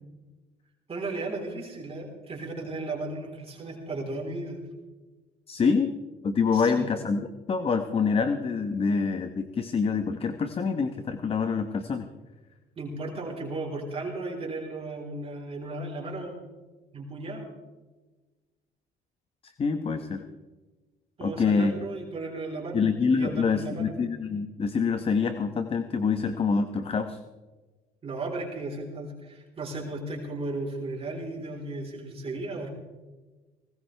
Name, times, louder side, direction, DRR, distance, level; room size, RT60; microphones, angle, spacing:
voice 1, 0.9-4.6 6.5-6.9 12.8-16.4 16.9-17.5 21.2-22.8 23.1-23.9 28.0-32.7, right 2 dB, 35° right, -1 dB, 4.0 m, -35 dB
voice 2, 5.5-5.9 6.2-12.1 19.4-20.2 21.2-21.8 22.7-27.2, left 5 dB, 35° left, 8 dB, 1.1 m, -26 dB
19.0 x 19.0 x 3.4 m, 1.3 s
cardioid pair, 110°, 17 cm